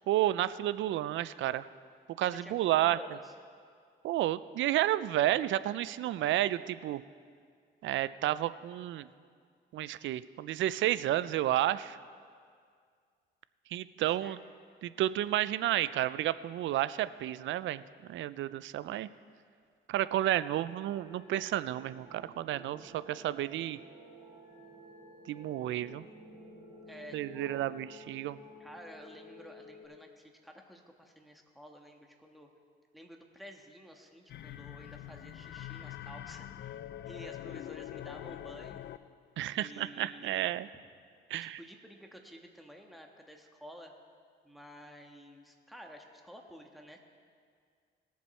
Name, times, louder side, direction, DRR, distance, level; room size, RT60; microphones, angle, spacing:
voice 1, 0.1-1.7 2.2-3.0 4.0-7.0 7.8-9.1 9.7-12.0 13.7-14.4 14.8-17.8 18.1-19.1 19.9-23.8 25.3-26.0 27.1-28.4 39.4-40.7 41.3-41.6, right 13 dB, 70° right, 16 dB, 0.4 m, -31 dB
voice 2, 2.3-3.3 14.2-14.4 26.9-27.7 28.6-32.5 32.9-36.8 37.0-38.8 39.5-40.6 41.4-43.9 44.4-47.0, equal, ahead, 2 dB, 1.4 m, -51 dB
sound 1, 20.8-29.8, left 1 dB, 20° right, 3.9 m, -53 dB
sound 2, 34.3-39.2, left 12 dB, 60° left, 0.4 m, -44 dB
19.5 x 7.2 x 4.4 m, 2.1 s
cardioid pair, 90°, 20 cm